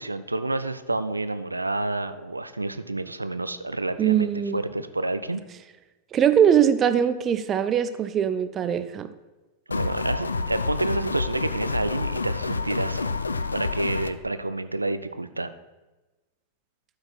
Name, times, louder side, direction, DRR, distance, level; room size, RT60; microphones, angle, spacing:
voice 1, 0.0-5.4 9.7-13.1 13.5-15.5, right 2 dB, 80° right, 12 dB, 0.4 m, -29 dB
voice 2, 4.0-4.6 6.1-9.1, right 9 dB, 25° right, 11 dB, 0.5 m, -21 dB
sound 1, 9.7-14.1, left 4 dB, 75° left, 0.4 m, -28 dB
12.0 x 4.8 x 4.3 m, 1.1 s
figure-of-eight pair, 90°, 0 cm